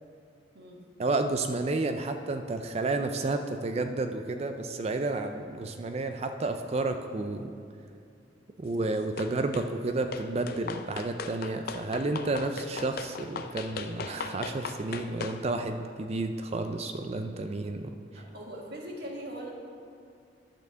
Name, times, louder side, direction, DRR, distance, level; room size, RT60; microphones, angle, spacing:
voice 1, 1.0-7.5 8.6-17.9, right 2 dB, 35° right, 7 dB, 0.4 m, -31 dB
sound 1, 9.2-9.7 10.1-15.4, left 4 dB, 50° left, 0.4 m, -38 dB
voice 2, 18.1-19.5, right 1 dB, 55° right, -2 dB, 1.6 m, -40 dB
10.5 x 4.4 x 6.8 m, 2.4 s
head